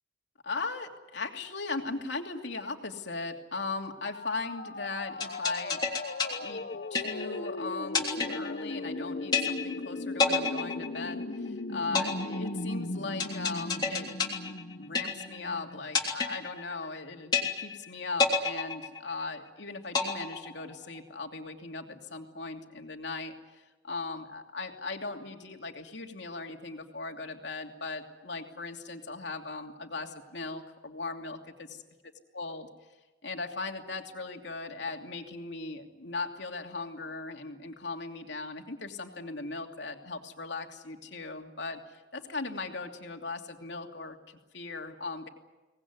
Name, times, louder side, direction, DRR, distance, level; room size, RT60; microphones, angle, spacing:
voice 1, 0.4-5.8 6.4-6.6 6.9-31.8 32.3-32.7 33.2-45.3, left 3 dB, 80° left, 3 dB, 2.8 m, -38 dB
sound 1, 4.1-15.8, left 2 dB, 55° left, 0.9 m, -38 dB
sound 2, 5.2-7.5 7.9-9.0 9.3-9.9 10.2-11.5 12.0-15.5 16.0-17.0 17.3-17.9 18.2-19.5 19.9-21.0, left 4 dB, 25° left, 3.2 m, -29 dB
24.5 x 19.5 x 9.7 m, 1.1 s
head